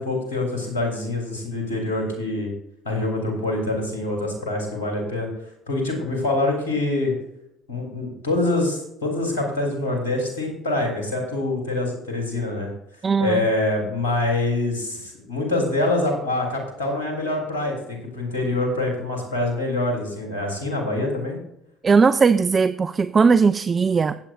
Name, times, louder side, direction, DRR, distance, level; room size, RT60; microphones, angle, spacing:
voice 1, 0.0-2.5 2.8-5.3 5.7-7.1 7.7-12.7 13.2-21.4, left 2 dB, 85° left, 0 dB, 3.3 m, -25 dB
voice 2, 13.0-13.5 21.8-24.1, right 5 dB, 35° right, 13 dB, 0.5 m, -18 dB
17.0 x 8.4 x 2.6 m, 0.79 s
hypercardioid pair, 60°, 0 cm